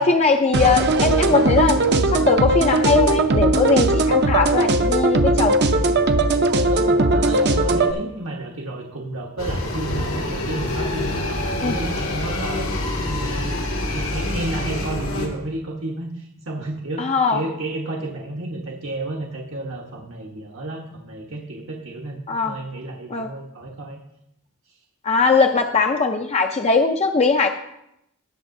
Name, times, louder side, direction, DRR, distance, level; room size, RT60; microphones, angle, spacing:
voice 1, 0.0-1.8 2.1-5.6 11.6-11.7 17.0-17.4 22.3-22.5 23.1-23.3 25.0-27.5, left 4 dB, 30° left, 4 dB, 0.5 m, -20 dB
sound 1, 0.5-7.9, right 2 dB, 55° right, 0.7 m, -18 dB
voice 2, 6.5-13.6 13.9-24.0, right 2 dB, 75° right, -1 dB, 1.2 m, -32 dB
sound 2, 9.4-15.3, left 1 dB, 90° left, 2.1 m, -26 dB
18.5 x 6.5 x 2.7 m, 0.81 s
head